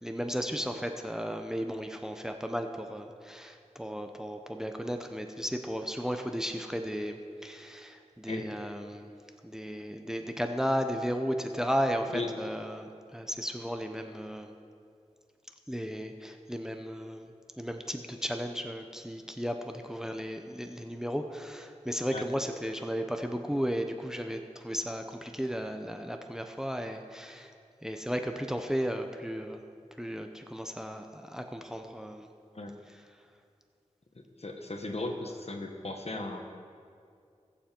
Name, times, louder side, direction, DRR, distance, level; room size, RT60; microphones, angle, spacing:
voice 1, 0.0-9.1 9.4-14.5 15.7-17.3 17.6-27.5 27.8-29.6 30.0-32.3, equal, 5° right, 5 dB, 0.8 m, -34 dB
voice 2, 34.1-36.4, left 2 dB, 55° left, 3 dB, 1.4 m, -36 dB
21.0 x 7.1 x 4.6 m, 2.3 s
wide cardioid pair, 55°, 12 cm